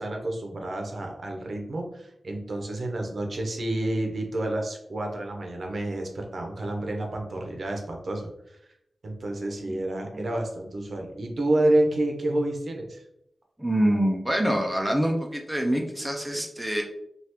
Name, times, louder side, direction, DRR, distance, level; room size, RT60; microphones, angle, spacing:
voice 1, 0.0-8.3 9.0-13.0, right 1 dB, 55° right, 1 dB, 0.6 m, -29 dB
voice 2, 9.7-10.3 13.6-16.8, right 1 dB, 5° right, 0 dB, 0.4 m, -26 dB
2.9 x 2.3 x 3.3 m, 0.79 s
wide cardioid pair, 135°, 0 cm